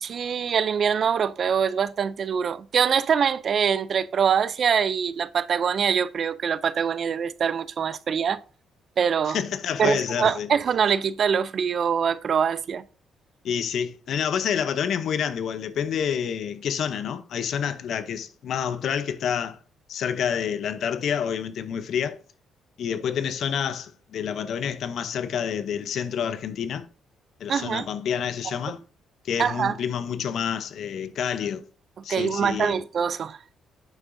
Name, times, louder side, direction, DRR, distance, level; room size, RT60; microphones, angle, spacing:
voice 1, 0.0-8.4 9.0-9.4 9.8-12.8 27.5-27.9 29.4-29.8 32.1-33.4, right 7 dB, 55° right, 0.4 m, -24 dB
voice 2, 9.3-10.5 13.4-19.6 19.9-22.2 22.8-26.9 27.4-28.8 29.2-31.6 32.0-32.8, left 8 dB, 70° left, 0.7 m, -28 dB
8.8 x 6.1 x 2.6 m
cardioid pair, 90°, 0 cm